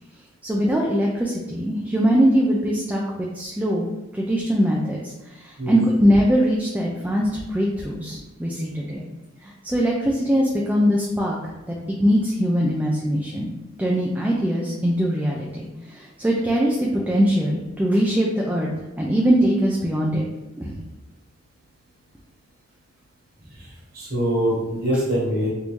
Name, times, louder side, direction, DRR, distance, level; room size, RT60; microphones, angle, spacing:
voice 1, 0.4-3.9 4.1-9.0 9.4-11.4 11.7-13.5 13.8-18.7 19.0-20.2 20.6-20.8, equal, 10° right, -3 dB, 0.3 m, -22 dB
voice 2, 23.5-25.5, equal, 50° right, -5 dB, 1.2 m, -24 dB
3.4 x 2.6 x 3.0 m, 1.1 s
head